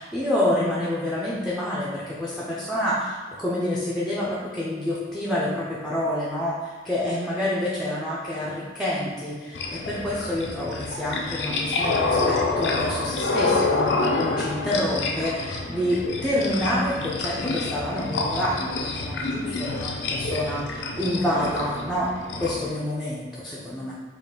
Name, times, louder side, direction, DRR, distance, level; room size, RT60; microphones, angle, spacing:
voice 1, 0.0-22.1 22.4-23.9, left 1 dB, ahead, -7 dB, 0.4 m, -28 dB
sound 1, 9.5-22.7, left 3 dB, 65° left, 0.4 m, -27 dB
3.9 x 2.4 x 3.6 m, 1.4 s
head